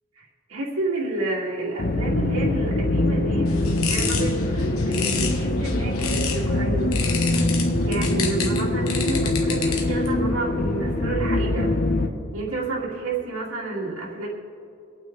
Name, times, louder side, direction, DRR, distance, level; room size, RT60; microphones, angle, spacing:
voice 1, 0.5-7.0 7.2-7.5 7.8-11.8 12.3-14.3, right 2 dB, 85° right, -5 dB, 2.5 m, -30 dB
sound 1, 1.8-12.1, left 2 dB, 45° left, 0.7 m, -23 dB
sound 2, 3.5-6.5 6.9-10.1, left 6 dB, 75° left, 1.3 m, -31 dB
24.5 x 9.0 x 3.3 m, 2.7 s
head